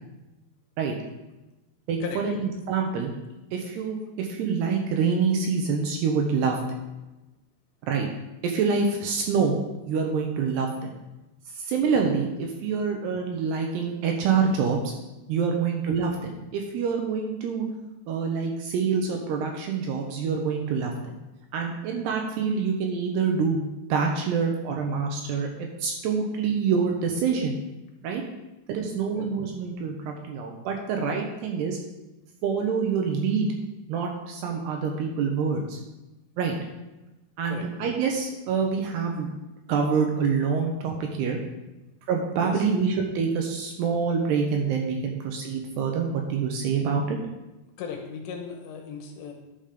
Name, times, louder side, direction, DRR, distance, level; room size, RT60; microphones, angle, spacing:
voice 1, 1.9-3.1 3.5-6.6 7.9-8.1 8.4-9.6 9.9-10.9 11.5-14.9 15.3-17.7 18.1-21.2 21.5-27.6 28.0-28.2 28.7-31.8 32.4-33.5 33.9-35.8 36.4-36.6 37.4-39.3 39.7-41.4 42.1-47.2, right 5 dB, 75° right, 2 dB, 2.6 m, -26 dB
voice 2, 47.8-49.3, left 6 dB, 75° left, 2 dB, 2.9 m, -36 dB
11.0 x 5.2 x 5.1 m, 1.0 s
omnidirectional pair, 5.4 m